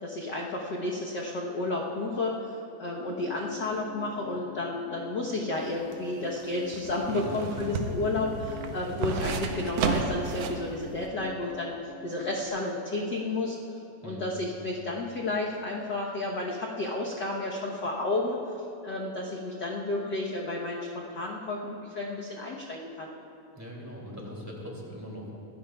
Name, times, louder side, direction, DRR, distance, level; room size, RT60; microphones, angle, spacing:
voice 1, 0.0-11.7 12.0-13.6 14.0-18.6 18.8-23.1, left 2 dB, 85° left, -2 dB, 0.9 m, -32 dB
sound 1, 3.1-12.5, left 6 dB, 45° left, 1.3 m, -46 dB
sound 2, 5.6-10.7 11.0-11.1, right 4 dB, 70° right, 1.7 m, -32 dB
voice 2, 14.0-14.4 23.5-25.3, equal, 5° right, -3 dB, 2.2 m, -41 dB
24.0 x 13.5 x 2.3 m, 2.7 s
omnidirectional pair, 3.4 m